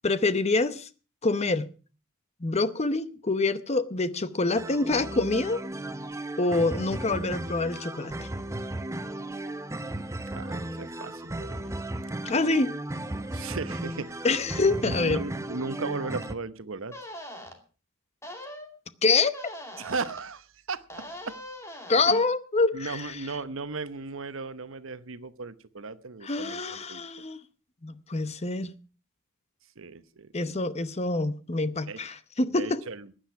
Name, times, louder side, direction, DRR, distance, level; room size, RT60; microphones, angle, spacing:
voice 1, 0.0-0.9 1.2-1.7 2.4-5.6 6.4-8.1 12.2-12.7 14.2-15.2 19.0-19.4 21.9-23.1 26.2-27.4 27.8-28.7 30.3-32.8, left 3 dB, 30° left, 0.8 m, -26 dB
sound 1, 4.5-16.3, right 1 dB, 15° right, 0.7 m, -35 dB
voice 2, 10.3-11.8 13.3-14.2 14.8-17.0 19.8-21.4 22.1-22.2 22.7-27.0 29.8-30.3 31.9-32.0 32.5-33.1, right 4 dB, 70° right, 0.9 m, -36 dB
sound 2, 16.2-16.3 16.9-17.5 18.2-18.7 19.3-20.2 20.9-22.1, left 1 dB, 15° left, 2.4 m, -42 dB
15.5 x 10.0 x 5.8 m
head